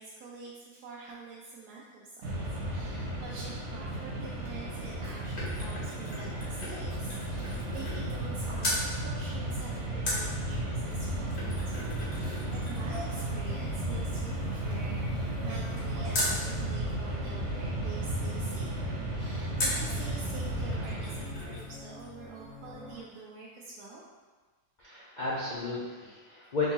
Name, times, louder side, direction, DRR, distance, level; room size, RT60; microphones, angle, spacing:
voice 1, 0.0-2.3 2.7-24.0, right 3 dB, 85° right, -5 dB, 1.1 m, -46 dB
Mechanisms, 2.2-21.7, right 1 dB, 55° right, 1.1 m, -34 dB
sound 1, 4.7-8.3 8.6-8.9 10.1-16.4 19.6-19.9 20.4-20.5 20.7-21.7 22.0-22.1, left 1 dB, 40° left, 1.0 m, -38 dB
sound 2, 10.3-23.0, equal, 15° left, 1.3 m, -48 dB
voice 2, 24.8-26.7, left 3 dB, 55° left, -8 dB, 0.5 m, -33 dB
3.6 x 3.6 x 2.8 m, 1.4 s
omnidirectional pair, 1.6 m